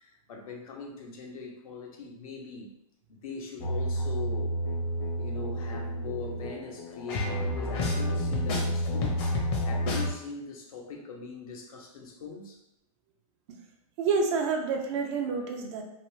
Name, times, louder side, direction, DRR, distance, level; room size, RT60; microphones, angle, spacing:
voice 1, 0.0-2.7 3.1-4.6 5.2-12.6, left 4 dB, 70° left, 0 dB, 0.9 m, -41 dB
sound 1, 3.6-10.1, equal, 45° left, 0.9 m, -30 dB
voice 2, 14.0-15.8, right 4 dB, 50° right, 2 dB, 0.6 m, -28 dB
2.9 x 2.6 x 3.2 m, 0.87 s
hypercardioid pair, 125°, 19 cm